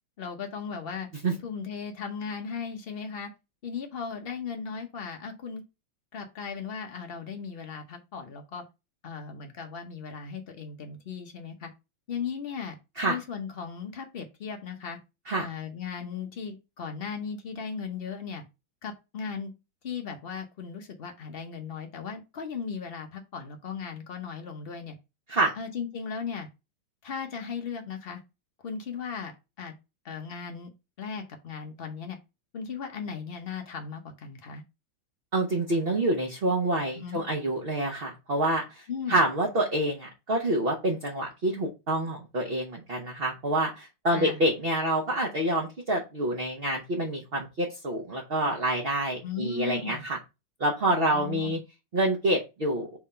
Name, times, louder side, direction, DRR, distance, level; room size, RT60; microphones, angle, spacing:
voice 1, 0.2-1.1 1.4-3.3 3.6-5.6 6.1-8.6 9.0-11.7 12.1-12.8 13.1-15.0 15.4-18.4 18.8-19.5 19.8-25.0 25.6-26.5 27.0-28.2 28.6-29.3 29.6-29.7 30.0-30.7 31.0-32.2 32.5-34.6 36.9-37.2 38.9-39.2 44.1-44.4 49.2-50.0 51.0-51.6, left 6 dB, 75° left, 4 dB, 0.5 m, -37 dB
voice 2, 35.3-38.8 39.1-50.2 50.6-51.6 51.9-52.9, right 1 dB, 40° right, 0 dB, 0.9 m, -27 dB
4.7 x 3.7 x 5.5 m, 0.26 s
omnidirectional pair, 2.2 m